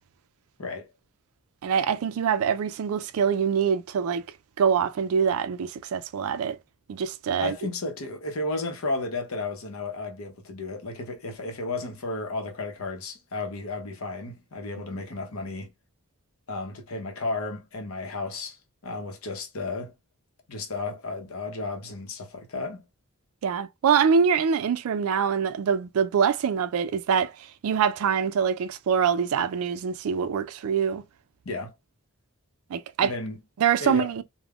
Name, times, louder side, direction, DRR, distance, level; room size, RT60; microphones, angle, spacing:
voice 1, 1.6-4.2 4.6-6.6 6.9-7.6 23.4-27.3 27.6-31.0 32.7-33.1 33.6-34.2, right 7 dB, 75° right, 0.3 m, -24 dB
voice 2, 7.4-15.7 16.5-18.6 18.8-19.9 20.5-22.8 31.4-31.7 33.0-33.4 33.8-34.1, left 3 dB, 70° left, 0.7 m, -33 dB
3.4 x 2.1 x 2.3 m
head